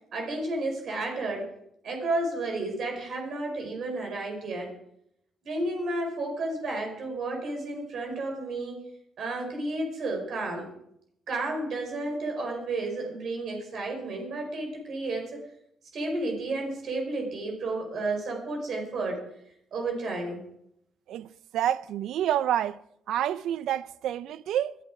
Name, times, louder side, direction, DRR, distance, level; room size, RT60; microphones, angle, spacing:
voice 1, 0.1-1.5 1.8-4.7 5.4-8.8 9.2-10.7 11.3-15.4 15.9-19.2 19.7-20.4, right 2 dB, 60° right, 5.2 m, -32 dB
voice 2, 21.1-22.8 23.1-24.8, right 11 dB, 80° right, 0.5 m, -28 dB
20.5 x 12.0 x 4.9 m
cardioid pair, 90°, 0 cm